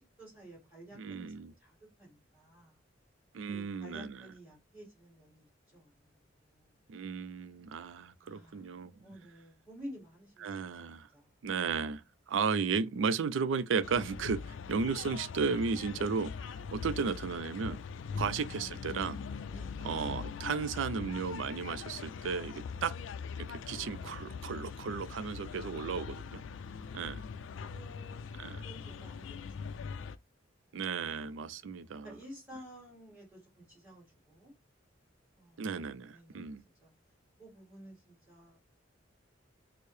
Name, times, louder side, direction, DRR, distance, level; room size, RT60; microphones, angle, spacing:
voice 1, 0.0-1.3 1.6-2.7 3.5-6.1 6.4-6.7 8.2-10.6 11.1-11.3 16.8-17.0 18.1-18.3 19.5-19.8 23.8-24.5 26.5-29.3 29.6-29.9 31.0-34.5 35.4-35.7 36.1-36.5 36.8-36.9 37.4-38.6, equal, 10° right, 2.0 m, -53 dB
voice 2, 0.9-1.5 3.3-4.3 6.9-8.9 10.4-11.1 11.4-17.8 18.2-19.2 19.8-22.9 23.5-26.4 26.9-27.2 28.4-28.6 30.7-32.2 35.6-36.6, right 5 dB, 85° right, 0.4 m, -34 dB
sound 1, 13.8-30.2, left 5 dB, 85° left, 0.3 m, -42 dB
4.5 x 2.0 x 3.1 m
head